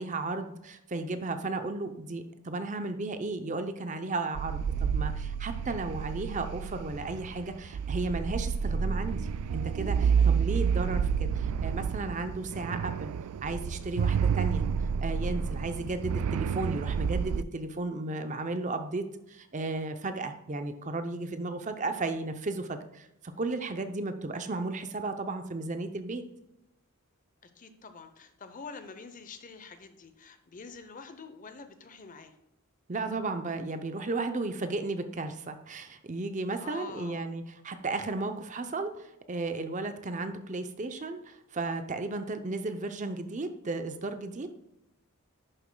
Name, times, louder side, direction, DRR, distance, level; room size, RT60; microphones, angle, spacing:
voice 1, 0.0-9.2 9.5-13.1 13.4-14.6 15.0-23.1 23.4-26.2 32.9-44.5, right 2 dB, 35° right, 8 dB, 0.6 m, -34 dB
sound 1, 4.3-17.4, right 6 dB, 85° right, 0.3 m, -29 dB
voice 2, 27.4-32.4 36.6-37.3, left 4 dB, 35° left, 9 dB, 0.7 m, -46 dB
11.0 x 6.9 x 2.3 m, 0.88 s
head